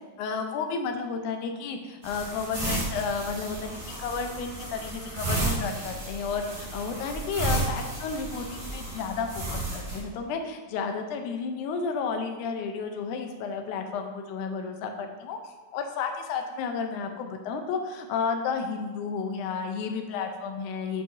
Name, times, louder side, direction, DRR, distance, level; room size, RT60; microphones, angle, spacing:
voice 1, 0.2-15.4 15.7-21.0, left 5 dB, 90° left, 5 dB, 2.1 m, -32 dB
sound 1, 2.0-10.0, right 2 dB, 30° right, 0.8 m, -33 dB
10.0 x 4.8 x 2.6 m, 1.3 s
omnidirectional pair, 3.5 m